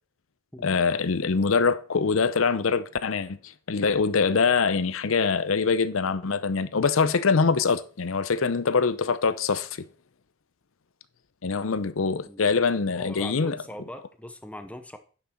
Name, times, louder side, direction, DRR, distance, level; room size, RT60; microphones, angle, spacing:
voice 1, 0.6-9.8 11.4-13.6, left 5 dB, 75° left, 0.7 m, -24 dB
voice 2, 12.3-15.0, left 1 dB, 5° left, 0.8 m, -42 dB
10.0 x 6.0 x 4.4 m
head